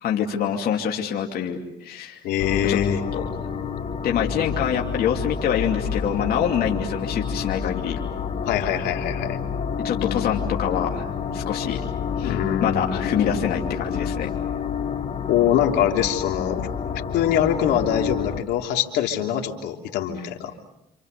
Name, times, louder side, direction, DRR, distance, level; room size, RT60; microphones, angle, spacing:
voice 1, 0.0-2.2 2.6-2.8 3.1-3.3 4.0-8.0 9.8-11.8 12.2-14.3, left 8 dB, 65° left, 1 dB, 2.8 m, -26 dB
voice 2, 2.2-3.0 8.5-9.4 12.2-13.8 15.3-16.7 17.1-20.5, left 10 dB, 85° left, 3 dB, 3.3 m, -24 dB
sound 1, 2.4-18.4, left 6 dB, 40° left, 2.6 m, -29 dB
29.0 x 27.5 x 6.8 m, 0.83 s
cardioid pair, 110°, 17 cm